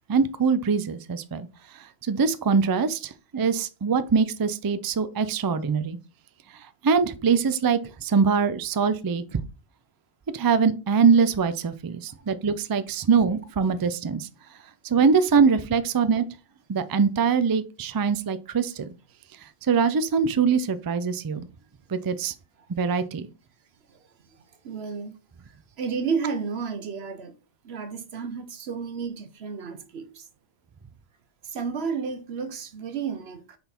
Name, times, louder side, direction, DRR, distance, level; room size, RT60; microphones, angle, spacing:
voice 1, 0.1-1.5 2.0-6.0 6.8-9.4 10.3-14.3 14.8-16.2 16.7-18.9 19.6-21.5 21.9-22.3 22.7-23.3, right 5 dB, 40° right, 0.3 m, -23 dB
voice 2, 24.6-25.2 25.8-27.4 27.6-30.3 31.4-33.6, right 5 dB, 80° right, 1.1 m, -32 dB
5.6 x 4.1 x 4.3 m
omnidirectional pair, 1.1 m